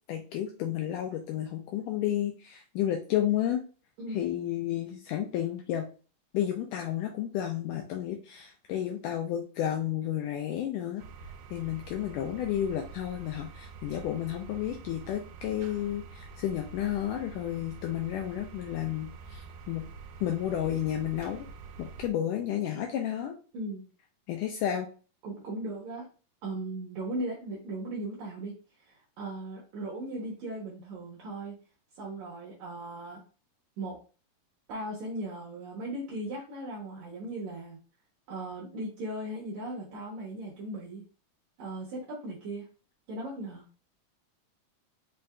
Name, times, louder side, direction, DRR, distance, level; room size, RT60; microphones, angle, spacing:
voice 1, 0.1-3.6 4.1-5.9 6.3-11.0 11.5-19.9 20.2-21.5 21.8-23.4 24.3-24.9, left 11 dB, 80° left, 3 dB, 1.9 m, -31 dB
sound 1, 11.0-22.1, right 4 dB, 85° right, 2.3 m, -46 dB
voice 2, 25.2-26.1 26.4-31.6 32.0-33.2 33.8-34.0 34.7-37.8 38.3-41.0 41.6-42.7 43.1-43.6, right 1 dB, 65° right, -3 dB, 2.1 m, -38 dB
5.6 x 2.6 x 3.4 m, 0.36 s
omnidirectional pair, 4.1 m